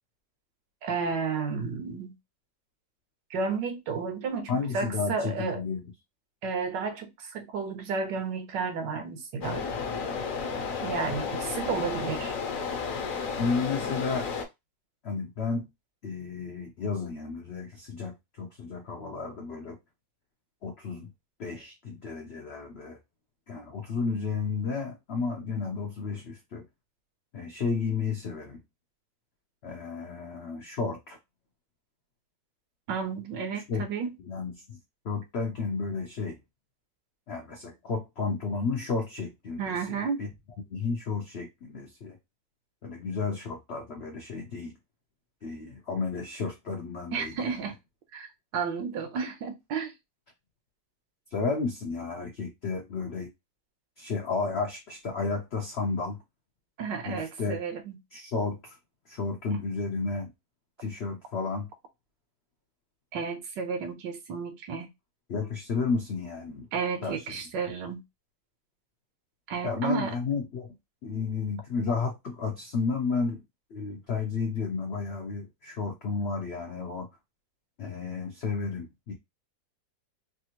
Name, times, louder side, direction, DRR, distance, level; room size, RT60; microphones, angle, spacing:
voice 1, 0.8-2.2 3.3-5.6 6.4-9.7 10.8-12.3 32.9-34.1 39.6-40.3 47.1-47.7 48.1-49.9 56.8-58.0 63.1-64.9 66.7-68.0 69.5-70.1, right 5 dB, 80° right, 1.4 m, -32 dB
voice 2, 4.5-5.8 13.4-14.3 15.0-15.7 16.0-19.8 20.6-21.1 21.4-23.0 23.5-26.6 27.3-28.6 29.6-31.2 33.5-33.9 34.2-34.8 35.0-36.4 37.3-40.3 40.7-42.2 42.8-44.8 45.4-47.6 51.3-53.3 54.0-56.2 57.0-57.6 58.1-58.8 59.1-60.3 60.8-61.7 65.3-66.7 67.0-67.4 69.6-70.7 71.0-73.4 73.7-77.1 77.8-79.1, left 4 dB, 85° left, 0.5 m, -32 dB
sound 1, 9.4-14.4, left 5 dB, 65° left, 0.9 m, -32 dB
3.4 x 2.4 x 2.8 m
omnidirectional pair, 1.9 m